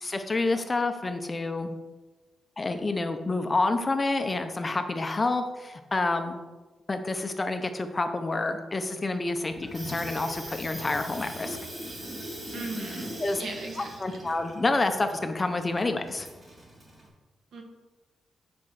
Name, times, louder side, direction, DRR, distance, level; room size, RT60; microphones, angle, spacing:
voice 1, 0.0-1.7 2.6-6.4 6.9-11.6 13.2-13.4 14.0-16.3, left 2 dB, 20° left, 7 dB, 0.6 m, -28 dB
Water tap faucet / Sink (filling or washing), 9.5-17.1, equal, 25° right, 2.3 m, -41 dB
voice 2, 12.5-14.3 17.5-17.6, right 2 dB, 75° right, 1 dB, 1.7 m, -38 dB
8.7 x 4.3 x 6.3 m, 1.2 s
wide cardioid pair, 180°, 0 cm